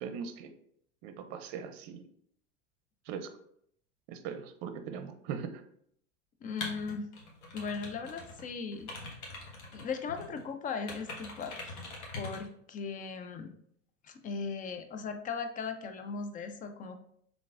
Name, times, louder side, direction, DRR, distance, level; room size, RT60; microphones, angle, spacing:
voice 1, 0.0-0.5 1.0-2.0 3.1-3.3 4.1-5.6, right 7 dB, 60° right, 8 dB, 0.6 m, -40 dB
voice 2, 6.4-7.1 7.5-8.9 9.7-11.7 12.2-13.5 14.0-17.0, left 5 dB, 25° left, 7 dB, 0.4 m, -38 dB
sound 1, 6.6-8.4 8.7-10.4 10.9-12.5, left 3 dB, 50° left, 1.3 m, -43 dB
3.8 x 3.4 x 2.4 m, 0.68 s
hypercardioid pair, 95°, 36 cm